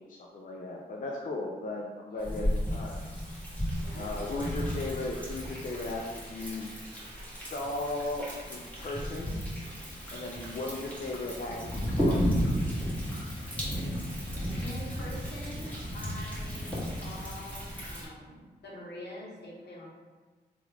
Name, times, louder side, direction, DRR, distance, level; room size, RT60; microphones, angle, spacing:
voice 1, 0.0-3.0 3.9-6.7 7.5-9.4 10.1-12.8, left 2 dB, 50° left, -1 dB, 0.4 m, -36 dB
voice 2, 2.1-2.5 3.8-4.2 14.6-16.7 17.0-19.9, left 1 dB, 70° left, -3 dB, 0.9 m, -45 dB
Thunder, 2.2-18.1, equal, 5° left, 1.4 m, -34 dB
3.0 x 2.4 x 3.4 m, 1.4 s
cardioid pair, 50°, 18 cm